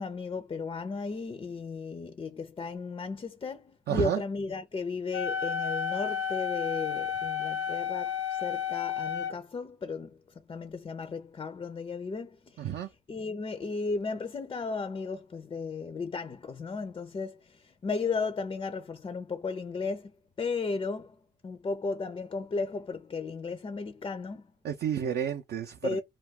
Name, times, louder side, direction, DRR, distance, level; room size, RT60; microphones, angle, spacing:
voice 1, 0.0-10.2 10.5-12.7 13.1-21.2 21.4-24.5 25.8-26.0, left 4 dB, 25° left, 0.4 m, -35 dB
voice 2, 3.9-4.2 12.6-12.9 24.6-26.0, right 9 dB, 55° right, 0.5 m, -31 dB
Wind instrument woodwind instrument, 5.1-9.3, left 8 dB, 80° left, 0.7 m, -32 dB
2.3 x 2.3 x 3.5 m
cardioid pair, 90°, 20 cm